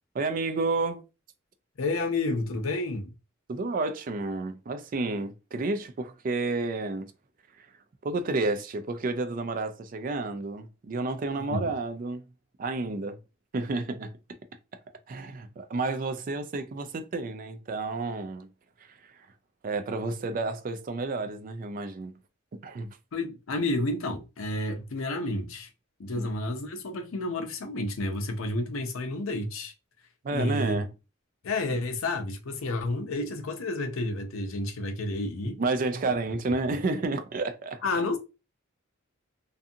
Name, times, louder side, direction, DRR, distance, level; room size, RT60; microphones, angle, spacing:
voice 1, 0.1-1.0 3.5-7.1 7.6-7.7 8.0-12.3 12.6-13.2 13.5-14.1 15.1-18.5 19.6-22.1 22.5-22.9 26.2-26.3 30.2-30.9 31.7-31.8 35.6-37.8, right 3 dB, 40° right, 0.3 m, -30 dB
voice 2, 1.8-3.1 11.5-11.7 23.1-25.7 26.0-29.7 30.3-30.8 31.4-35.6 37.8-38.2, left 2 dB, 80° left, 0.5 m, -30 dB
2.6 x 2.4 x 2.5 m
head